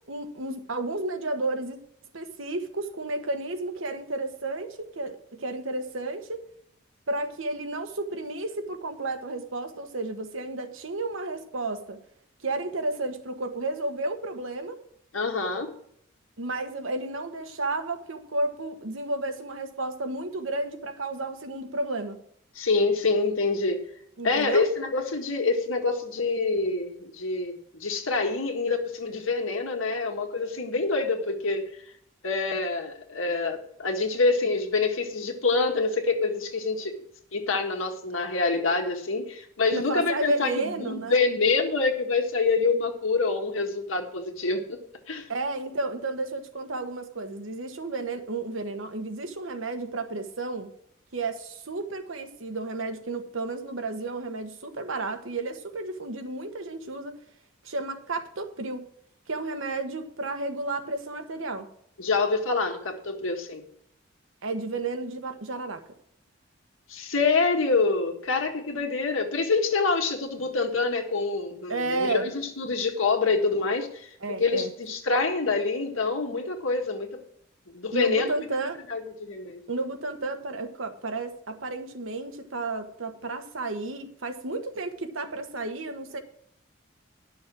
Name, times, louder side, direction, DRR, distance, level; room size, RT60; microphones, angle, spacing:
voice 1, 0.1-1.8 2.1-6.4 7.1-12.0 12.4-14.8 16.4-22.2 24.2-24.7 39.7-41.2 45.3-50.7 51.1-57.2 57.6-58.9 59.3-61.7 64.4-65.8 71.7-72.3 74.2-74.7 77.9-78.8 79.7-86.2, right 2 dB, 75° right, 6 dB, 1.2 m, -32 dB
voice 2, 15.1-15.7 22.6-23.8 24.2-27.5 27.8-31.7 32.2-37.0 37.3-44.8 45.1-45.3 62.0-63.6 66.9-77.2 77.7-78.3 78.9-79.6, left 3 dB, 80° left, 3 dB, 1.7 m, -26 dB
11.0 x 6.4 x 6.1 m, 0.68 s
head